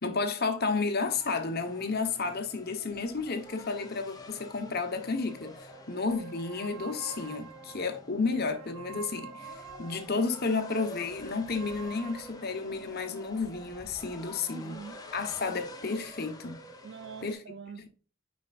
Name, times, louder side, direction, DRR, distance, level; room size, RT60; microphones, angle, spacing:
voice 1, 0.0-5.6 5.9-9.5 9.8-14.8 15.1-16.6 17.2-17.4 17.8-17.9, left 4 dB, 45° left, 1.1 m, -32 dB
sound 1, 1.0-17.3, left 2 dB, 15° left, 0.8 m, -48 dB
sound 2, 3.3-5.3 5.7-10.5 11.2-13.8, right 5 dB, 70° right, 0.8 m, -49 dB
voice 2, 14.5-15.0 16.8-17.9, right 5 dB, 50° right, 0.4 m, -44 dB
9.1 x 5.2 x 2.5 m
head